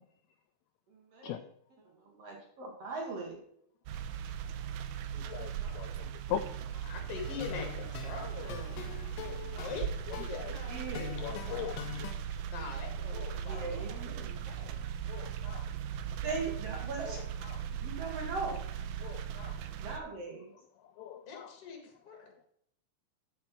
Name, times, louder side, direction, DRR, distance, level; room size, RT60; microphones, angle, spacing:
voice 1, 0.9-1.5 1.8-3.4 10.7-11.1 13.5-14.4 16.2-17.2 17.8-18.6 19.8-20.5, right 4 dB, 55° right, 0 dB, 2.2 m, -39 dB
sound 1, 3.9-20.0, right 9 dB, 80° right, 2.1 m, -38 dB
voice 2, 5.3-6.4 9.2-9.6 10.3-10.5 11.2-12.1 13.2-13.3 13.5-13.6 15.1-15.7 19.0-19.6 21.0-21.5, left 10 dB, 90° left, 9 dB, 1.6 m, -40 dB
voice 3, 6.7-9.0 9.6-9.9 10.2-10.9 11.3-11.5 12.5-14.8 21.3-22.3, left 5 dB, 50° left, 4 dB, 2.6 m, -44 dB
sound 2, 7.2-12.1, left 10 dB, 75° left, 1.6 m, -44 dB
7.4 x 5.9 x 6.0 m, 0.70 s
omnidirectional pair, 3.7 m